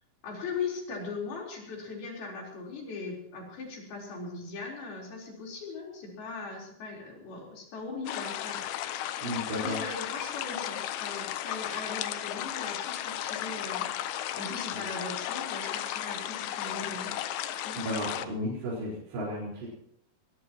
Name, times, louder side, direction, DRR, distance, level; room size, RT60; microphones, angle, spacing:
voice 1, 0.2-8.7 9.0-17.1 17.6-17.8, left 4 dB, 60° left, -1 dB, 5.9 m, -39 dB
sound 1, 8.1-18.3, left 12 dB, 80° left, 3.2 m, -35 dB
voice 2, 9.2-9.8 17.8-19.7, equal, 70° right, -6 dB, 6.9 m, -33 dB
21.5 x 20.5 x 3.0 m, 0.73 s
omnidirectional pair, 5.1 m